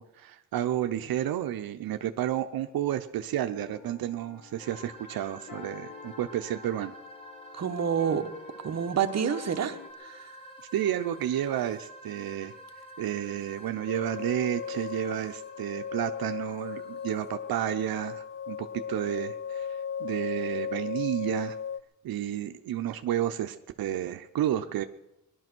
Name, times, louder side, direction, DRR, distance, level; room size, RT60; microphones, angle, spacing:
voice 1, 0.0-6.9 10.7-12.5 13.0-21.6 22.0-24.8, right 11 dB, 85° right, 8 dB, 0.8 m, -31 dB
sound 1, 3.5-9.9, left 5 dB, 65° left, 2.5 m, -48 dB
sound 2, 4.6-18.2, equal, 15° left, 1.6 m, -49 dB
voice 2, 7.5-8.3 8.6-10.3, right 7 dB, 50° right, 6 dB, 1.1 m, -28 dB
sound 3, 13.9-21.8, left 7 dB, 35° left, 0.5 m, -36 dB
19.5 x 11.5 x 6.1 m, 0.92 s
wide cardioid pair, 130°, 35 cm